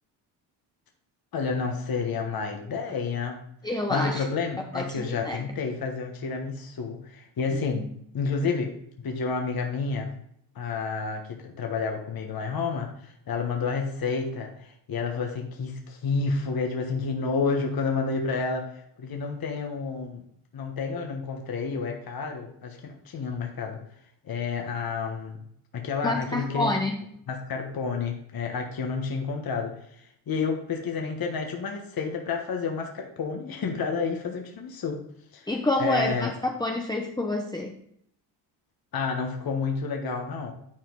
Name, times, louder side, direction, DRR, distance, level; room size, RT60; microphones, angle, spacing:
voice 1, 1.3-3.4 3.9-10.1 10.5-20.2 20.5-23.8 24.2-25.4 25.7-26.7 27.3-35.0 35.3-35.5 35.8-36.3 38.9-40.5, left 4 dB, 45° left, 2 dB, 1.4 m, -30 dB
voice 2, 3.6-4.3 4.7-5.4 7.7-7.9 26.0-27.0 35.5-37.7, left 2 dB, 10° left, 1 dB, 0.8 m, -28 dB
10.0 x 4.3 x 3.9 m, 0.69 s
supercardioid pair, 70°, 49 cm